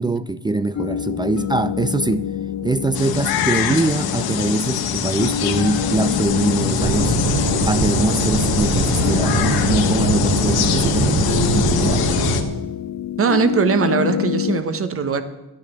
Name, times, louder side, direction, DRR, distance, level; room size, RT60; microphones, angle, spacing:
voice 1, 0.0-2.3 2.6-7.2 7.7-12.3, right 2 dB, 15° right, 0.3 m, -23 dB
sound 1, 0.7-14.6, left 9 dB, 50° left, 0.8 m, -27 dB
sound 2, 2.9-12.4, left 7 dB, 75° left, 1.5 m, -23 dB
sound 3, 6.8-12.4, right 3 dB, 55° right, 2.1 m, -22 dB
voice 2, 13.2-15.2, right 5 dB, 35° right, 1.2 m, -20 dB
12.0 x 9.6 x 7.0 m
cardioid pair, 115°, 36 cm